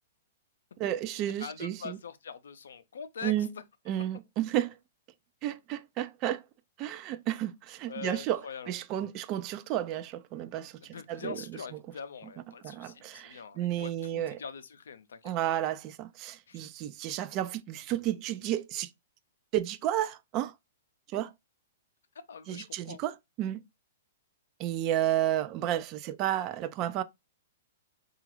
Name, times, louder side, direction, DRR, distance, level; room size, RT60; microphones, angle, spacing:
voice 1, 0.8-2.0 3.2-3.5 3.9-4.7 5.4-6.4 6.8-11.4 12.6-14.4 15.2-18.9 19.5-20.5 21.1-21.3 22.5-23.6 24.6-27.0, right 12 dB, 35° right, 0.3 m, -32 dB
voice 2, 1.4-3.3 7.9-8.7 10.9-15.3 16.5-16.6 22.3-23.0, left 6 dB, 80° left, 0.5 m, -43 dB
3.7 x 2.4 x 2.9 m
hypercardioid pair, 120°, 0 cm